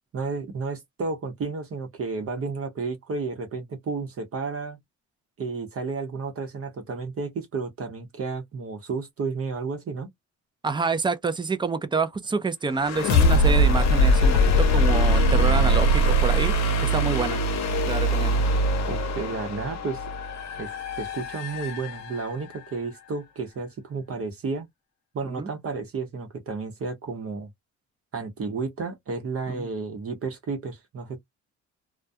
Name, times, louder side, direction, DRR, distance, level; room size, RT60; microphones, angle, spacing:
voice 1, 0.1-4.8 5.4-10.1 18.9-20.0 20.5-24.7 25.1-27.5 28.1-31.2, right 4 dB, 50° right, 0.9 m, -32 dB
voice 2, 10.6-16.5 16.8-17.4 17.9-18.4 25.2-25.5 29.5-29.7, right 4 dB, 15° right, 0.4 m, -27 dB
sound 1, 12.8-22.5, equal, 60° left, 0.8 m, -22 dB
2.3 x 2.2 x 2.6 m
cardioid pair, 90°, 30 cm